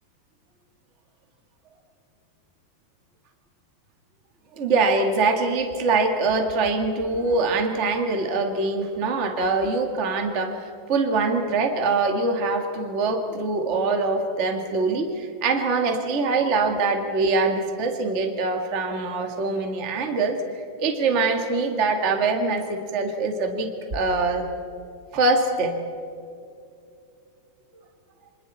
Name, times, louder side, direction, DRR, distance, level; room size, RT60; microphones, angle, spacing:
voice 1, 4.5-24.5 25.1-25.8, right 3 dB, 55° right, 4 dB, 0.7 m, -24 dB
29.0 x 26.0 x 4.2 m, 2.6 s
omnidirectional pair, 4.9 m